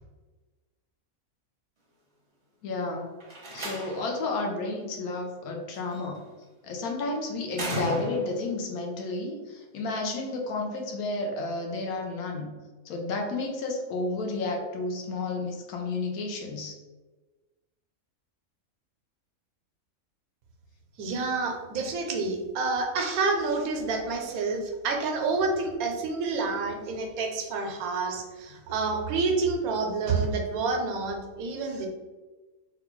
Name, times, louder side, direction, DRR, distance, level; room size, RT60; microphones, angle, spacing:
voice 1, 2.6-3.1 3.5-6.2 6.6-12.5 12.8-16.8, left 2 dB, 85° left, 1 dB, 1.1 m, -31 dB
Slam, 3.2-4.2 5.7-6.2 7.5-8.5, right 1 dB, 35° right, 0.5 m, -34 dB
voice 2, 21.0-31.9, right 4 dB, 85° right, 3 dB, 1.1 m, -28 dB
3.6 x 2.3 x 3.0 m, 1.2 s
omnidirectional pair, 1.5 m